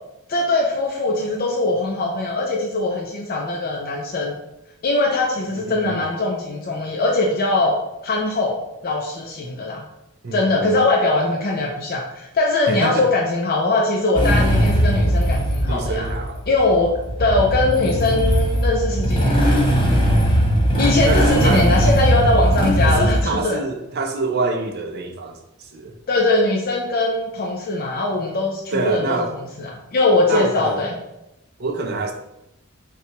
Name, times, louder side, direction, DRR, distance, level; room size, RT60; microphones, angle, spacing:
voice 1, 0.3-4.4 4.8-9.8 10.3-16.1 16.5-19.6 20.8-23.6 26.1-30.9, left 2 dB, 45° left, 0.5 m, -21 dB
voice 2, 5.7-6.0 10.2-10.8 12.7-13.1 15.6-16.4 21.0-21.7 22.8-25.9 28.7-29.4 30.3-30.8 31.6-32.1, right 3 dB, 50° right, 0.5 m, -26 dB
Motorcycle / Engine starting, 14.1-23.2, equal, 25° left, 0.9 m, -19 dB
5.5 x 2.3 x 2.9 m
head